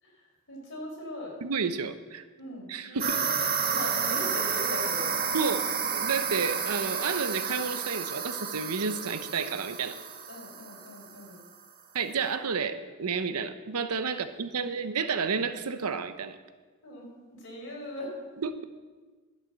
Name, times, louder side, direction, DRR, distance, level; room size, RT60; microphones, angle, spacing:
voice 1, 0.0-1.4 2.4-3.3 3.7-5.2 10.3-11.4 14.1-14.3 16.8-18.1, left 1 dB, 60° left, -2 dB, 4.6 m, -40 dB
voice 2, 1.4-2.2 2.7-3.3 5.3-5.6 5.9-10.0 11.9-16.3 18.4-18.6, right 5 dB, 80° right, 11 dB, 0.8 m, -31 dB
sound 1, 3.0-11.2, right 6 dB, 45° right, 1.2 m, -31 dB
11.5 x 8.2 x 7.4 m, 1.4 s
head